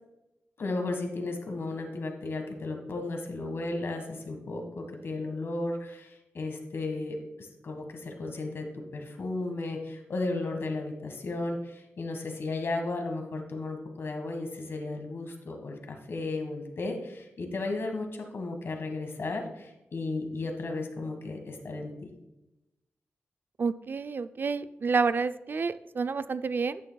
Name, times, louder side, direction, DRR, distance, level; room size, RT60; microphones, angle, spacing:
voice 1, 0.6-22.1, left 2 dB, 60° left, 4 dB, 1.6 m, -34 dB
voice 2, 23.6-26.8, right 4 dB, 50° right, 12 dB, 0.4 m, -29 dB
10.5 x 8.9 x 2.3 m, 0.94 s
wide cardioid pair, 100°, 4 cm